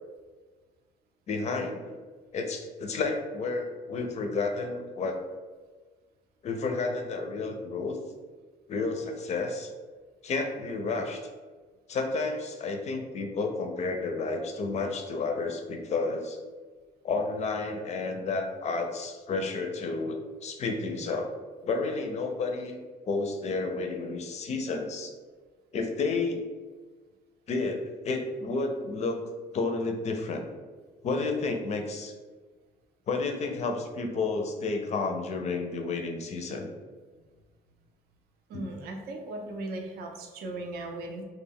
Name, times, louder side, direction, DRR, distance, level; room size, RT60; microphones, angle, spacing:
voice 1, 1.3-2.0 2.3-5.2 6.4-8.0 8.7-9.7 10.2-11.2 11.9-16.4 17.0-21.3 21.6-22.8 23.1-25.1 25.7-26.4 27.5-29.2 29.5-30.4 31.0-32.1 33.1-36.7 38.5-38.7, left 3 dB, 40° left, 4 dB, 0.4 m, -31 dB
voice 2, 38.5-41.2, right 2 dB, 70° right, 2 dB, 0.5 m, -37 dB
2.2 x 2.1 x 3.5 m, 1.4 s
cardioid pair, 110°, 17 cm